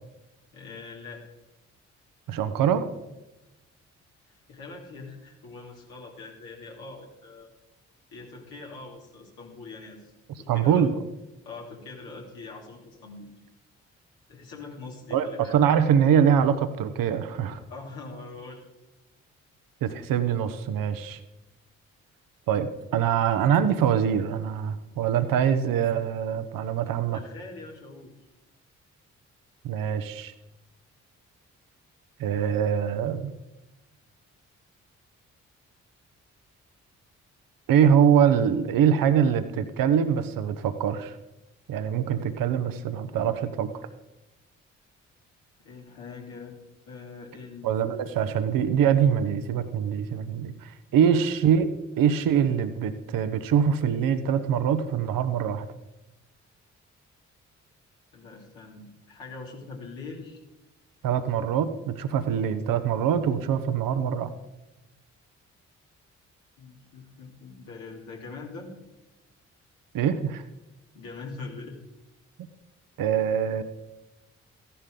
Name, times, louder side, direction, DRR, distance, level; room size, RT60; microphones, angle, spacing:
voice 1, 0.5-1.2 4.3-7.5 8.1-10.1 10.4-10.8 11.4-13.3 14.3-15.6 17.7-18.7 27.1-28.1 45.6-46.6 46.9-47.8 51.0-51.3 58.1-60.4 66.6-68.7 70.9-71.8, left 3 dB, 70° left, -2 dB, 2.9 m, -42 dB
voice 2, 2.3-2.9 10.5-11.0 15.1-17.6 19.8-21.2 22.5-27.2 29.6-30.3 32.2-33.3 37.7-41.2 41.7-43.8 47.6-51.7 52.0-55.7 61.0-64.3 69.9-70.4 73.0-73.6, right 8 dB, 65° right, 11 dB, 1.0 m, -24 dB
14.5 x 11.5 x 3.8 m, 1.0 s
hypercardioid pair, 40°, 36 cm